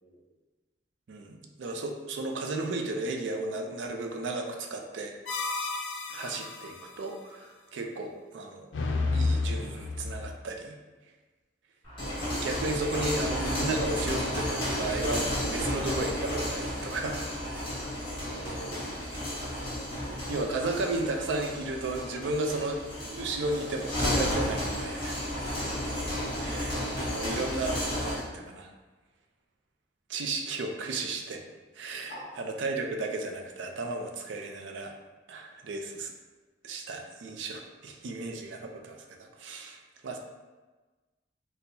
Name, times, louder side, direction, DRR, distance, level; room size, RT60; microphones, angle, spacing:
voice 1, 1.1-5.1 6.1-8.7 9.1-10.8 12.3-17.3 20.3-25.2 26.4-28.7 30.1-31.4 31.7-34.9 35.3-36.1 36.6-40.2, right 2 dB, 80° right, 3 dB, 0.4 m, -34 dB
sound 1, 5.3-6.9 8.7-10.3, left 3 dB, 85° left, 0.4 m, -31 dB
sound 2, 11.8-28.3, left 1 dB, 30° left, 1.3 m, -32 dB
voice 2, 18.3-18.8 25.6-25.9 32.1-32.4, right 1 dB, 45° left, -4 dB, 0.9 m, -44 dB
4.3 x 2.1 x 2.6 m, 1.3 s
head